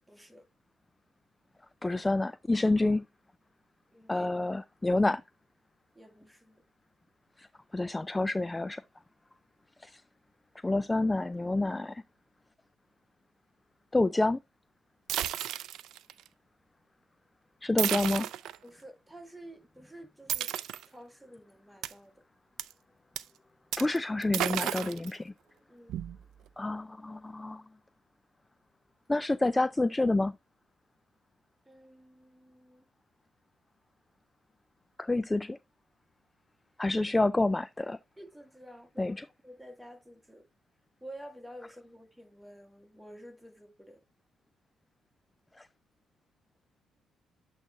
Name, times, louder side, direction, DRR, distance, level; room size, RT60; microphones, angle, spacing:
voice 1, 0.1-0.5 3.9-4.3 6.0-6.6 18.6-20.5 20.9-22.2 25.7-26.0 31.7-32.8 38.2-40.5 41.0-44.0, equal, 5° right, 1.8 m, -50 dB
voice 2, 1.8-3.0 4.1-5.2 7.4-7.5 7.7-8.8 9.8-10.0 10.6-12.0 13.9-14.4 17.6-18.3 23.8-25.3 26.6-27.6 29.1-30.3 35.0-35.6 36.8-38.0 39.0-39.3 45.6-45.7, left 2 dB, 15° left, 0.3 m, -28 dB
sound 1, 15.1-16.3 17.8-18.6 20.3-20.8 21.8-21.9 22.6-22.7 23.2-23.3 23.7-24.0 24.2-25.1 25.9-26.5, right 12 dB, 80° right, 0.4 m, -32 dB
8.5 x 3.3 x 3.7 m
cardioid pair, 85°, 0 cm